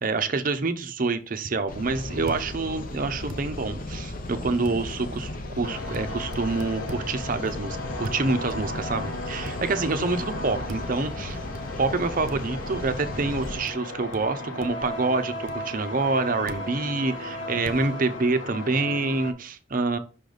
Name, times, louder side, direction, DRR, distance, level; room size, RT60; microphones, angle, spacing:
voice 1, 0.0-5.3 5.6-11.4 11.8-20.0, right 3 dB, 45° right, 9 dB, 0.6 m, -27 dB
sound 1, 1.7-13.6, left 1 dB, 45° left, 0.8 m, -36 dB
sound 2, 2.3-2.4 3.3-3.4 4.6-4.8 5.9-6.1 6.3-7.0 8.0-8.2 9.5-9.6 10.7-10.9 11.5-11.6 12.3-12.4 13.7-13.8 14.1-14.2 14.6-14.9 15.5-15.6 16.5-16.7 17.6-17.8, right 2 dB, 80° right, 0.6 m, -39 dB
sound 3, 5.6-19.3, left 1 dB, 70° left, 1.4 m, -36 dB
5.7 x 3.9 x 5.0 m, 0.37 s
head